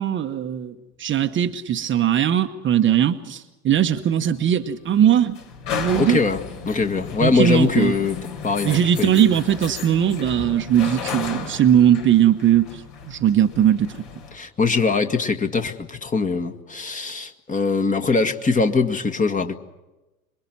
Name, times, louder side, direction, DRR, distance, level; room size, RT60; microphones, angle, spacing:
voice 1, 0.0-5.4 5.7-6.2 7.2-7.9 8.6-14.0, right 10 dB, 30° right, 7 dB, 1.1 m, -19 dB
sound 1, 3.7-14.3, left 6 dB, 55° left, 4.8 m, -34 dB
voice 2, 6.0-6.4 6.7-8.2 8.4-9.2 14.3-19.6, left 4 dB, 20° left, 5 dB, 1.8 m, -22 dB
26.5 x 22.5 x 6.1 m, 1.0 s
hypercardioid pair, 90°, 41 cm